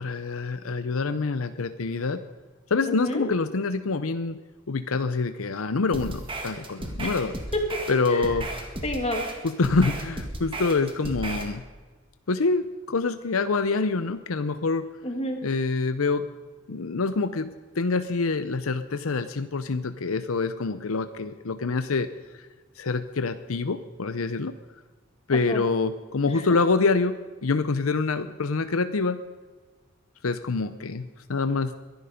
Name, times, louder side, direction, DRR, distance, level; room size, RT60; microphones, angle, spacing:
voice 1, 0.0-2.2 2.7-4.4 4.7-7.4 7.9-8.5 9.4-11.6 12.3-14.8 15.4-16.2 16.7-22.1 22.8-24.5 25.3-27.1 27.4-29.2 30.2-31.7, left 4 dB, 90° left, 11 dB, 0.7 m, -26 dB
voice 2, 2.9-3.2 7.0-7.2 8.1-8.3 8.8-9.3 15.0-15.4 25.3-25.6, left 1 dB, 30° left, 3 dB, 2.3 m, -30 dB
sound 1, 5.9-11.5, right 1 dB, 25° right, 1.9 m, -34 dB
22.5 x 11.0 x 5.1 m, 1.3 s
head